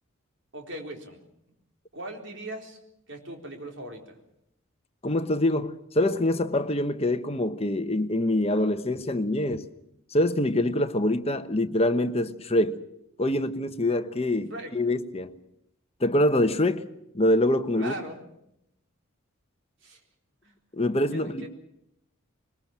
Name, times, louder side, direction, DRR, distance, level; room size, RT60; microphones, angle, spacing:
voice 1, 0.5-1.2 1.9-2.8 3.1-4.2 14.5-14.7 17.8-18.2 19.8-20.0 20.4-20.5 21.1-21.5, right 1 dB, 55° right, 4.0 m, -39 dB
voice 2, 5.0-9.7 10.1-12.8 13.2-15.4 16.0-16.9 17.1-17.9 20.8-21.5, left 1 dB, 30° left, 1.1 m, -25 dB
22.5 x 21.0 x 7.4 m
head